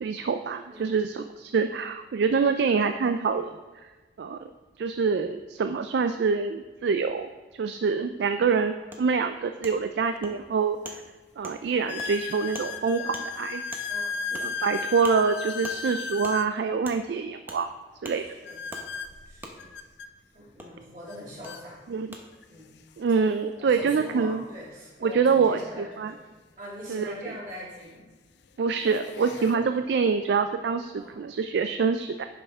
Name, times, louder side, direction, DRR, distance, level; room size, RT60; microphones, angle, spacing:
voice 1, 0.0-3.6 4.2-4.4 4.8-7.3 7.6-11.0 11.4-13.6 14.3-17.7 18.0-18.2 21.9-22.1 23.0-24.4 25.0-26.1 26.9-27.1 28.6-32.2, right 5 dB, 65° right, 8 dB, 0.3 m, -26 dB
Wood, 8.9-9.0 9.6-9.7 10.2-10.3 10.8-11.0 11.4-11.6 12.0-12.1 12.5-12.7 13.1-13.2 13.7-13.8 14.3-14.5 15.0-15.2 15.6-15.8 16.2-16.4 16.8-17.0 17.5-17.6 18.0-18.2 18.7-18.8 19.4-19.5 20.6-20.7 21.4-21.5 22.1-22.2, right 1 dB, 10° right, 0.8 m, -40 dB
sound 1, 10.2-10.3 10.9-11.0 11.9-16.5 18.4-20.1 21.1-21.2 21.4-21.6 22.4-22.5 24.7-24.8 26.9-27.0 27.7-28.1 28.6-29.5, left 5 dB, 65° left, 0.5 m, -35 dB
voice 2, 13.9-14.2 18.1-18.6 19.3-19.7 20.3-21.9 22.5-22.8 23.5-28.0 29.3-29.6 31.0-31.2, equal, 50° right, -6 dB, 2.8 m, -43 dB
10.5 x 5.5 x 3.5 m, 1.3 s
head